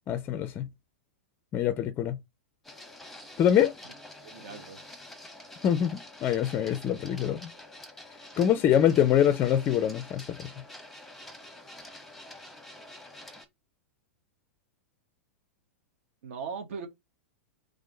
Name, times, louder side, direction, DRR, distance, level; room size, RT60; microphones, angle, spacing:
voice 1, 0.1-0.7 1.5-2.2 3.4-3.7 5.6-7.5 8.4-10.5, left 10 dB, 30° left, 0.4 m, -24 dB
Printer, 2.6-13.5, left 1 dB, 5° left, 0.9 m, -47 dB
voice 2, 4.2-4.8 16.2-16.9, right 5 dB, 55° right, 1.0 m, -39 dB
3.6 x 3.3 x 3.8 m
figure-of-eight pair, 100°, 8 cm